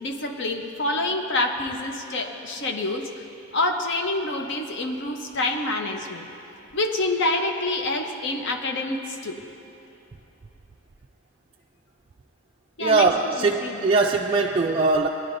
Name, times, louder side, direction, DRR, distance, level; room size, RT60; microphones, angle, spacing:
voice 1, 0.0-3.1 3.5-6.3 6.7-9.4 12.8-13.8, left 2 dB, 60° left, 4 dB, 0.8 m, -27 dB
voice 2, 12.8-15.1, right 3 dB, 30° right, 0 dB, 0.3 m, -21 dB
17.5 x 10.5 x 2.6 m, 3.0 s
head